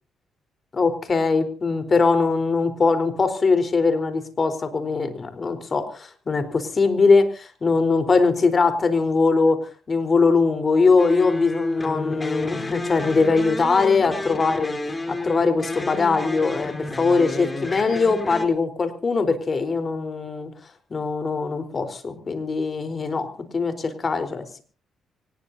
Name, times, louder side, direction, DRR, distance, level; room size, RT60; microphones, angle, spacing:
voice 1, 0.7-9.6 9.9-14.7 15.1-20.5 20.9-23.3 23.5-24.6, left 4 dB, 35° left, 7 dB, 4.2 m, -21 dB
sound 1, 11.0-18.5, left 2 dB, 20° left, 3.7 m, -30 dB
24.5 x 20.0 x 2.8 m, 0.39 s
cardioid pair, 90°, 0 cm